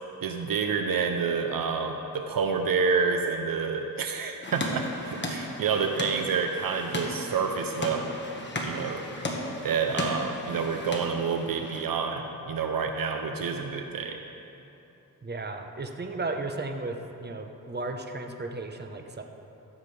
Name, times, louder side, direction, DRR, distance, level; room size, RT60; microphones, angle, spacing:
voice 1, 0.2-8.2 8.6-9.0 9.6-14.2, right 5 dB, 65° right, 5 dB, 0.7 m, -28 dB
sound 1, 4.4-11.8, left 1 dB, 30° left, 1.5 m, -35 dB
voice 2, 15.2-19.2, right 2 dB, 25° right, 4 dB, 0.9 m, -35 dB
15.0 x 7.4 x 3.4 m, 3.0 s
cardioid pair, 60°, 38 cm